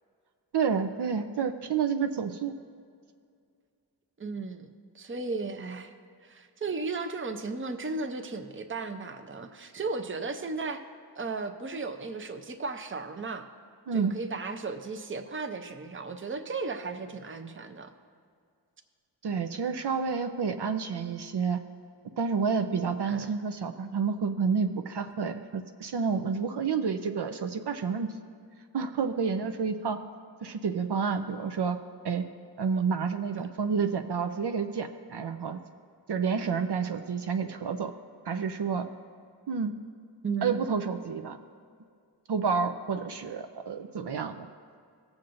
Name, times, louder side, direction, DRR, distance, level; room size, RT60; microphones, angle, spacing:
voice 1, 0.5-2.5 13.9-14.1 19.2-21.6 22.2-28.1 28.7-30.0 30.4-31.8 32.0-32.2 32.6-35.6 36.1-37.9 38.3-38.8 39.5-39.7 40.4-41.4 42.3-44.5, right 5 dB, 70° right, 7 dB, 0.6 m, -29 dB
voice 2, 4.2-4.7 4.9-5.9 6.2-10.8 11.2-13.5 13.9-17.9 23.1-23.3 40.2-40.7, right 4 dB, 30° right, 6 dB, 0.6 m, -35 dB
18.0 x 7.2 x 2.6 m, 2.3 s
wide cardioid pair, 85°, 41 cm